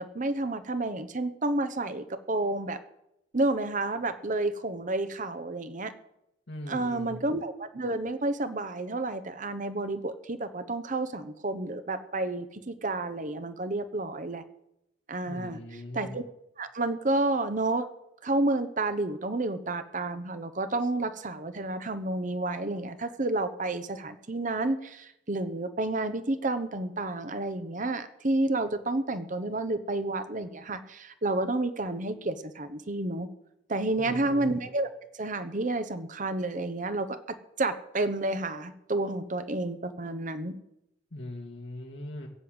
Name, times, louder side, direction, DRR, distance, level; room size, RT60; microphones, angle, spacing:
voice 1, 0.0-2.8 3.3-5.9 6.7-14.4 15.1-15.6 15.9-16.3 16.6-17.8 18.2-33.3 33.7-34.9 35.2-37.2 37.6-40.6, right 2 dB, 45° right, 10 dB, 1.0 m, -30 dB
voice 2, 6.5-7.2 15.2-16.2 34.0-34.6 41.1-42.3, left 1 dB, 75° left, 0 dB, 1.9 m, -40 dB
16.5 x 7.8 x 7.9 m, 0.82 s
head